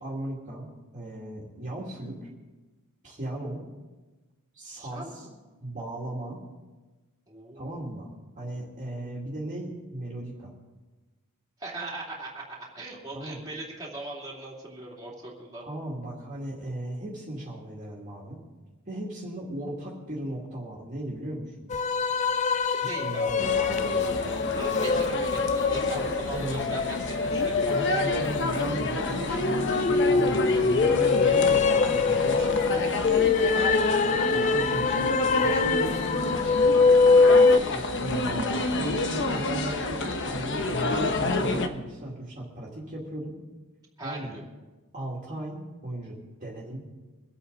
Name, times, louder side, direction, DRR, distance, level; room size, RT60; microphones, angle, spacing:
voice 1, 0.0-2.3 3.0-3.6 4.5-5.3 5.6-6.4 7.6-10.5 13.1-13.4 15.6-18.4 18.9-21.7 22.7-24.2 25.9-26.7 27.6-32.9 34.0-36.6 37.7-43.3 44.0-44.4 44.9-46.8, right 1 dB, 35° right, -4 dB, 2.5 m, -37 dB
voice 2, 4.7-5.5 7.3-7.7 11.6-15.6 22.8-23.4 24.6-28.0 37.5-37.9 44.0-44.4, right 2 dB, 15° right, -5 dB, 3.0 m, -40 dB
sound 1, 21.7-37.6, left 4 dB, 30° left, 0.4 m, -23 dB
sound 2, 23.4-41.7, left 2 dB, 55° left, 1.0 m, -29 dB
24.0 x 8.6 x 4.0 m, 1.2 s
head